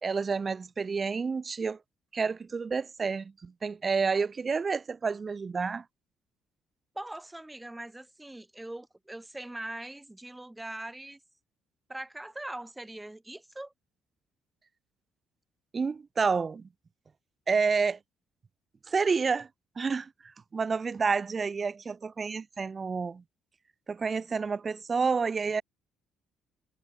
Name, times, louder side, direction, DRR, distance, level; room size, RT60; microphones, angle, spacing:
voice 1, 0.0-1.8 2.1-5.8 15.7-16.7 17.5-18.0 18.9-19.5 19.8-20.1 20.5-23.2 23.9-25.6, right 5 dB, 30° right, 2.2 m, -29 dB
voice 2, 6.9-11.2 11.9-13.7, right 1 dB, 10° right, 7.6 m, -41 dB
cardioid pair, 125°, 0 cm